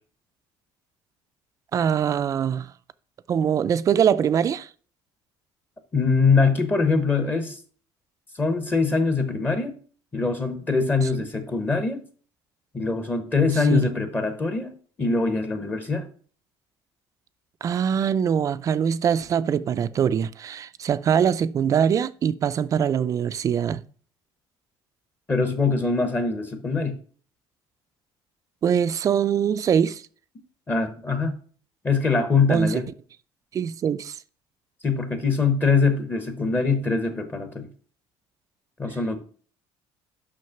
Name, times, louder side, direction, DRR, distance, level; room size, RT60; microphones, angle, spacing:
voice 1, 1.7-2.7 3.3-4.7 11.2-11.3 13.7-13.9 17.6-23.8 28.6-30.0 32.5-32.8 33.5-34.2, right 8 dB, 35° right, 0.4 m, -23 dB
voice 2, 5.9-7.6 8.4-9.7 10.1-12.0 12.7-14.7 15.0-16.1 25.3-27.0 30.7-31.4 31.8-32.8 34.8-37.7 38.8-39.2, left 4 dB, 20° left, 1.1 m, -23 dB
6.4 x 5.8 x 5.7 m
cardioid pair, 135°, 9 cm